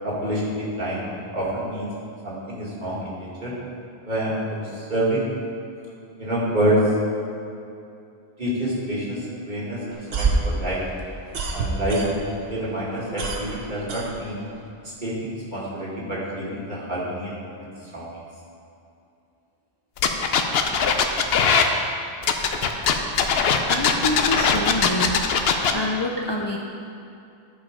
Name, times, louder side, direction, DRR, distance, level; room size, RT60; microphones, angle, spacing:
voice 1, 0.0-1.0 1.3-1.9 2.2-3.5 4.0-5.3 6.2-6.8 8.4-10.8 11.5-14.4 15.0-17.4 17.9-18.1, right 1 dB, 45° right, -7 dB, 2.2 m, -27 dB
sound 1, 9.9-12.5 12.8-14.7, right 3 dB, 70° right, 1.1 m, -26 dB
sound 2, 20.0-21.7 22.2-25.7, left 6 dB, 75° left, 0.9 m, -20 dB
voice 2, 23.6-25.2 25.7-26.6, left 1 dB, 35° left, -1 dB, 0.5 m, -26 dB
11.0 x 5.2 x 5.0 m, 2.6 s
omnidirectional pair, 1.1 m